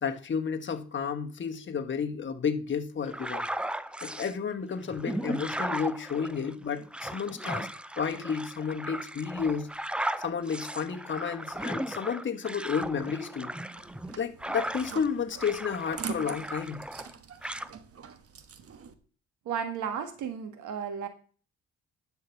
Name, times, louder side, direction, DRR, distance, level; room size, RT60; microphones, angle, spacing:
voice 1, 0.0-3.5 4.0-7.7 8.0-9.7 10.2-13.5 14.2-16.8 17.4-17.5, left 6 dB, 40° left, 1.4 m, -32 dB
sound 1, 3.1-4.3 4.8-15.1 15.4-17.1 17.4-17.7, right 1 dB, 5° right, 0.5 m, -36 dB
sound 2, 13.8-18.9, right 6 dB, 50° right, 1.2 m, -43 dB
voice 2, 19.4-21.1, right 7 dB, 80° right, 1.5 m, -33 dB
11.0 x 4.7 x 7.1 m
cardioid pair, 90°, 30 cm